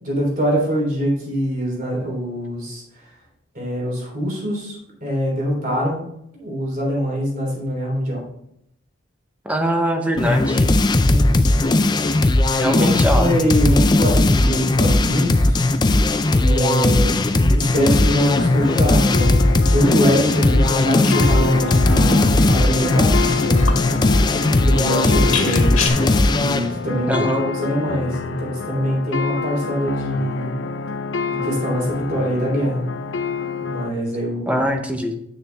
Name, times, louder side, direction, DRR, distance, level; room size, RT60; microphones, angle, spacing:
voice 1, 0.0-2.8 3.5-6.1 6.4-8.2 11.0-11.5 12.6-15.6 16.4-19.4 19.7-23.7 24.6-25.8 26.3-30.5 31.3-32.9 33.6-34.6, equal, 45° right, -2 dB, 3.4 m, -23 dB
voice 2, 9.4-10.7 12.5-13.3 27.1-27.5 34.5-35.1, equal, 5° right, 5 dB, 0.8 m, -22 dB
sound 1, 10.2-26.7, left 2 dB, 20° left, 0.4 m, -17 dB
sound 2, 17.9-33.9, left 4 dB, 65° left, 0.6 m, -27 dB
sound 3, 20.8-25.9, left 6 dB, 85° left, 1.8 m, -32 dB
9.0 x 6.6 x 3.4 m, 0.77 s
head